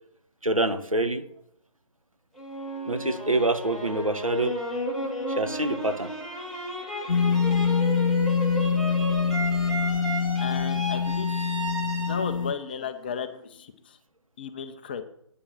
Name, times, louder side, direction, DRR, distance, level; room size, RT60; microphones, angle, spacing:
voice 1, 0.4-1.2 2.9-4.6 5.4-6.1, right 2 dB, 90° right, 9 dB, 1.2 m, -26 dB
sound 1, 2.4-13.4, equal, ahead, 1.1 m, -34 dB
sound 2, 7.1-12.5, left 6 dB, 80° left, 0.8 m, -25 dB
voice 2, 10.4-11.7 12.0-14.0 14.4-15.0, left 6 dB, 20° left, 9 dB, 0.5 m, -35 dB
9.2 x 6.9 x 6.4 m, 0.74 s
figure-of-eight pair, 145°, 17 cm